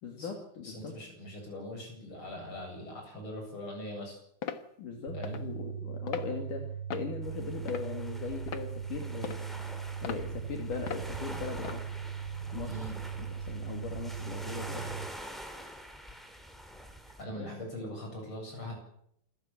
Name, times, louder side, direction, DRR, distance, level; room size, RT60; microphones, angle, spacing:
voice 1, 0.0-0.9 4.8-6.6 6.9-9.4 10.0-11.8 12.5-12.7 13.2-14.9 17.4-17.5, left 5 dB, 70° left, 2 dB, 4.1 m, -39 dB
voice 2, 0.6-4.2 5.1-5.4 12.6-13.0 17.1-18.7, left 1 dB, 35° left, 2 dB, 8.8 m, -41 dB
sound 1, 4.4-4.6 5.2-5.4 6.1-6.3 6.9-7.1 7.7-8.0 8.5-8.7 9.2-9.5 10.0-10.2 10.9-11.1 11.6-11.8, left 8 dB, 50° left, 1.6 m, -38 dB
sound 2, 5.1-15.1, right 7 dB, 45° right, 1.4 m, -39 dB
sound 3, 7.2-17.2, equal, ahead, 3.0 m, -46 dB
27.5 x 14.5 x 8.8 m, 0.71 s
omnidirectional pair, 3.8 m